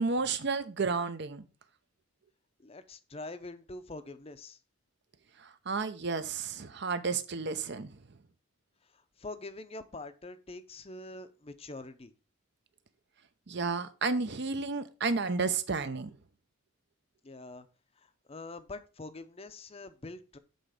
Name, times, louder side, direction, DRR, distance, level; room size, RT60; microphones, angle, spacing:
voice 1, 0.0-1.4 5.7-7.9 13.5-16.1, right 4 dB, 55° right, 0.7 m, -31 dB
voice 2, 2.6-4.6 8.8-12.1 17.2-17.7 18.0-20.4, left 2 dB, 30° left, 0.6 m, -45 dB
7.9 x 4.0 x 4.9 m
head